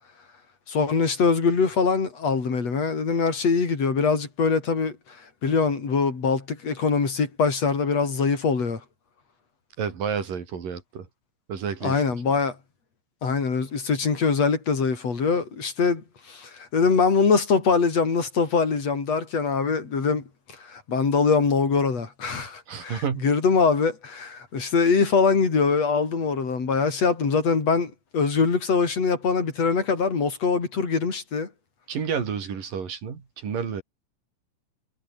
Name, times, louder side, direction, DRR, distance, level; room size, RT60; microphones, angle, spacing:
voice 1, 0.7-5.2 5.4-8.8 11.8-12.6 13.2-20.2 20.6-31.5, left 5 dB, 50° left, 5.4 m, -23 dB
voice 2, 9.8-11.1 11.5-12.0 22.7-23.3 31.9-33.8, right 6 dB, 85° right, 5.3 m, -30 dB
omnidirectional pair, 3.8 m